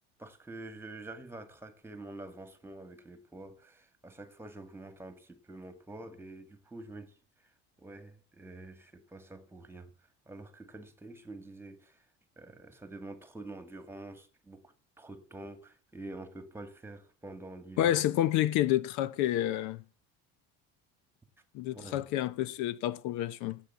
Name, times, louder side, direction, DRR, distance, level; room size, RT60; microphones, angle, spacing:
voice 1, 0.2-7.2 7.4-7.5 7.8-9.9 10.3-12.1 12.4-18.0 21.7-22.0, right 2 dB, 10° right, 2.0 m, -47 dB
voice 2, 17.8-19.8 21.5-23.6, left 13 dB, 65° left, 0.9 m, -29 dB
15.5 x 8.4 x 8.3 m
cardioid pair, 150°, 31 cm